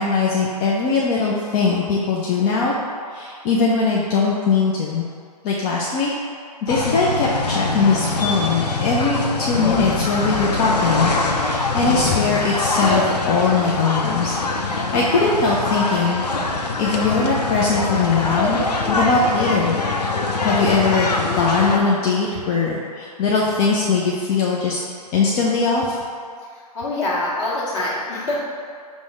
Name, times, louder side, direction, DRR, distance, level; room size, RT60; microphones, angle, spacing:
voice 1, 0.0-2.7 3.1-5.0 5.4-6.1 6.6-16.2 16.5-18.6 18.9-19.8 20.4-24.8 25.1-26.0, left 4 dB, 30° left, -4 dB, 0.4 m, -20 dB
sound 1, 6.7-21.8, left 3 dB, 80° left, 0.6 m, -23 dB
voice 2, 26.5-28.4, left 2 dB, 45° left, -7 dB, 1.5 m, -25 dB
5.2 x 2.1 x 4.8 m, 2.1 s
hypercardioid pair, 125°, 21 cm